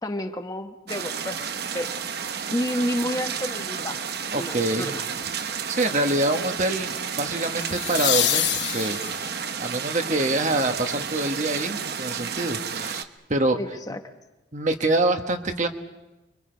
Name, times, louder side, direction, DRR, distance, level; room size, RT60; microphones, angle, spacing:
voice 1, 0.0-1.9 2.5-4.0 4.3-5.0 13.6-14.0, equal, 20° left, 6 dB, 1.1 m, -30 dB
sound 1, 0.9-13.0, right 6 dB, 55° right, 1.0 m, -31 dB
voice 2, 4.3-5.0 5.4-8.5 8.7-9.0 9.6-13.6 14.5-15.7, right 2 dB, 40° right, 6 dB, 1.4 m, -25 dB
sound 2, 4.6-4.9 7.6-9.5 12.4-12.5, left 12 dB, 65° left, 1.1 m, -26 dB
29.5 x 24.0 x 5.2 m, 1.1 s
head